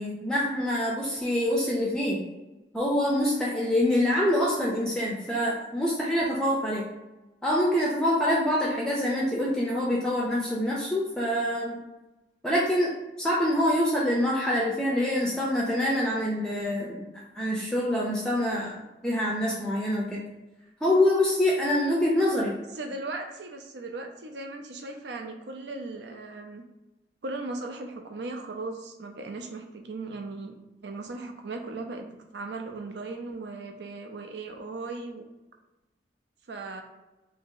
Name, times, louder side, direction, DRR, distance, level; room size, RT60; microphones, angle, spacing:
voice 1, 0.0-2.2 2.7-6.8 7.4-11.8 12.4-17.1 17.4-18.7 19.0-20.2 20.8-22.6, left 1 dB, 5° left, -4 dB, 0.4 m, -25 dB
voice 2, 22.8-26.6 27.2-35.2 36.5-36.8, right 3 dB, 75° right, 4 dB, 0.5 m, -37 dB
2.9 x 2.7 x 3.7 m, 1.1 s
head